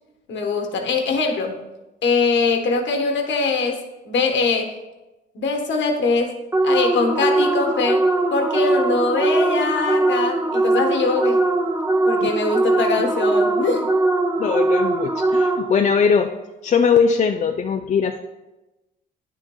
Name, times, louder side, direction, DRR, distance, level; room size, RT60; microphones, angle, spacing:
voice 1, 0.3-1.6 2.0-4.8 5.3-11.4 12.0-13.9, left 4 dB, 65° left, 4 dB, 1.1 m, -22 dB
sound 1, 6.5-15.9, right 2 dB, 10° right, 0.8 m, -20 dB
voice 2, 14.4-16.3 16.6-18.2, left 6 dB, 35° left, 4 dB, 0.4 m, -20 dB
9.8 x 7.2 x 2.2 m, 1.0 s
cardioid pair, 90°, 20 cm